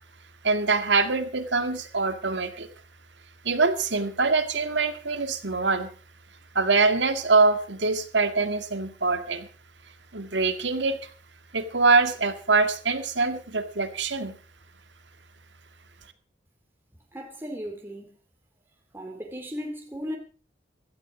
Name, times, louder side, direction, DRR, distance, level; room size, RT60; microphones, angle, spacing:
voice 1, 0.4-2.7 3.4-5.9 6.5-9.5 10.1-11.1 11.5-14.3, right 4 dB, 80° right, 2.0 m, -24 dB
voice 2, 17.1-18.2 18.9-20.2, equal, 10° right, 2.4 m, -36 dB
16.0 x 12.5 x 5.0 m
head